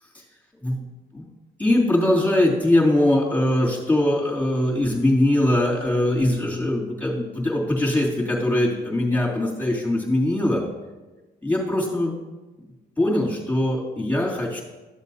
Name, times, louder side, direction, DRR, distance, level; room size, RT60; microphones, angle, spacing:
voice 1, 1.6-10.6 11.4-12.2 13.0-14.6, left 1 dB, 10° left, -4 dB, 2.9 m, -21 dB
13.0 x 7.2 x 2.8 m, 1.2 s
cardioid pair, 90°, 20 cm